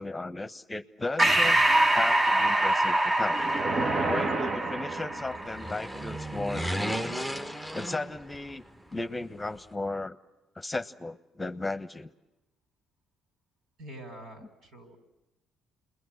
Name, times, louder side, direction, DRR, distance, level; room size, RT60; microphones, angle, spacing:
voice 1, 0.0-1.6 1.9-3.4 4.0-7.3 7.7-8.6 8.9-10.2 10.6-12.1, left 2 dB, 15° left, 10 dB, 1.1 m, -35 dB
Breathing, 1.2-6.1, right 1 dB, 25° right, 1.3 m, -25 dB
sound 1, 3.3-5.6, right 3 dB, 50° right, 1.6 m, -31 dB
sound 2, 5.2-8.7 8.9-9.0, equal, 10° right, 1.3 m, -34 dB
voice 2, 13.8-15.0, right 1 dB, 70° right, 6 dB, 6.0 m, -45 dB
28.5 x 21.5 x 8.0 m, 0.97 s
supercardioid pair, 75°, 0 cm